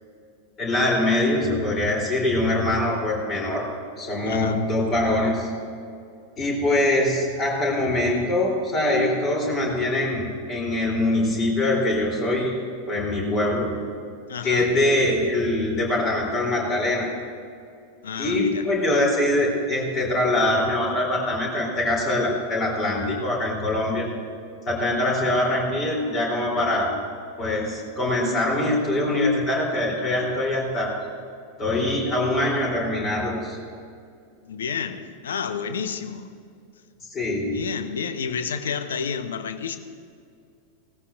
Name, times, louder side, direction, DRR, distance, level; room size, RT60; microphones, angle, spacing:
voice 1, 0.6-3.7 4.0-5.5 6.4-10.2 10.5-12.5 12.9-13.7 14.4-17.1 18.2-24.1 24.6-27.0 27.4-31.0 31.6-33.6 37.1-37.7, left 1 dB, 25° left, -2 dB, 3.5 m, -23 dB
voice 2, 4.2-4.6 14.3-14.7 18.0-18.6 34.4-36.3 37.5-39.8, left 6 dB, 65° left, 10 dB, 0.7 m, -30 dB
17.0 x 14.0 x 2.6 m, 2.4 s
figure-of-eight pair, 90°, 0 cm